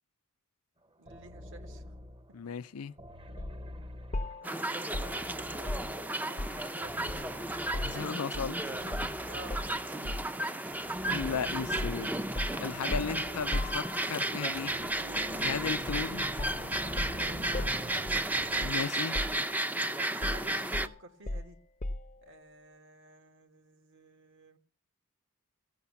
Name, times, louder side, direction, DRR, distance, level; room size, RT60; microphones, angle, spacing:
voice 1, 1.0-1.8 4.4-7.4 7.8-9.0 9.3-9.6 9.8-10.3 17.1-18.2 19.9-21.6 22.2-24.6, right 2 dB, 60° right, 1.8 m, -52 dB
sound 1, 1.1-2.4 3.0-6.2 6.8-8.2 8.7-10.2 10.7-18.7, equal, 25° right, 0.9 m, -45 dB
voice 2, 2.3-2.9 7.8-8.5 11.1-12.1 12.6-14.7 15.4-16.3 18.6-19.2, left 6 dB, 80° left, 0.5 m, -35 dB
sound 2, 3.4-3.6 4.1-6.7 7.1-8.6 8.9-9.1 9.5-10.4 11.2-11.4 11.8-14.3 15.9-16.1 16.4-18.9 19.1-19.8 20.2-22.2, left 1 dB, 35° left, 0.7 m, -38 dB
sound 3, 4.4-20.9, right 1 dB, 10° right, 0.6 m, -33 dB
16.0 x 6.6 x 7.0 m
head